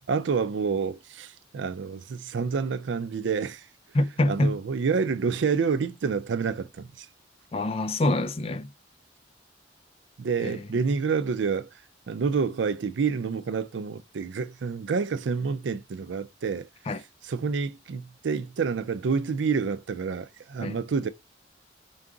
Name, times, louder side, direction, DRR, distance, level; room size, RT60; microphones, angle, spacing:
voice 1, 0.1-3.7 4.3-7.1 10.2-11.7 12.1-16.7 17.2-21.1, right 5 dB, 80° right, 0.4 m, -28 dB
voice 2, 3.9-4.5 7.5-8.7 10.4-10.6 16.9-17.0 20.6-20.8, left 1 dB, 30° left, 0.4 m, -25 dB
4.7 x 2.4 x 3.7 m
head